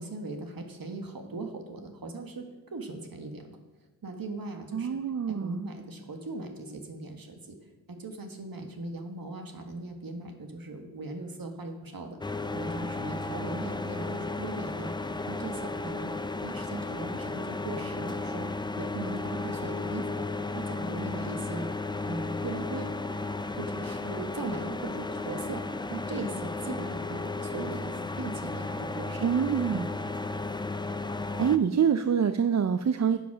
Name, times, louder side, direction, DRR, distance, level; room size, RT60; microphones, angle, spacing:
voice 1, 0.0-2.5 2.7-3.6 4.0-4.9 5.3-7.6 7.9-15.0 15.3-16.1 16.4-18.5 18.8-21.7 22.1-22.9 23.6-29.8, right 2 dB, 70° right, 5 dB, 1.6 m, -39 dB
voice 2, 4.7-5.6 29.2-29.9 31.4-33.2, right 7 dB, 50° right, 10 dB, 0.5 m, -25 dB
City Garage ventilation system, 12.2-31.6, left 3 dB, 15° left, 0.4 m, -34 dB
10.5 x 7.1 x 6.2 m, 1.1 s
wide cardioid pair, 85°, 36 cm